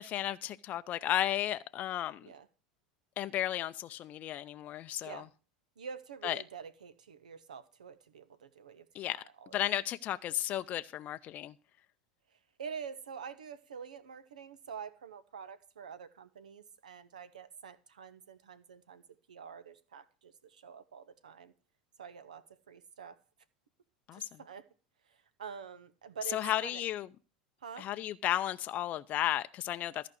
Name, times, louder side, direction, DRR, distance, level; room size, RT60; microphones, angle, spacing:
voice 1, 0.0-2.3 3.2-5.2 6.2-6.4 8.9-9.2 9.5-11.5 24.1-24.3 26.3-27.1 27.8-30.1, left 12 dB, 40° left, 0.5 m, -34 dB
voice 2, 5.8-9.6 12.3-19.0 19.3-21.5 22.0-23.2 24.1-24.7 25.0-26.8 27.6-27.9, right 7 dB, 75° right, 1.1 m, -47 dB
14.0 x 5.1 x 7.8 m
figure-of-eight pair, 80°, 4 cm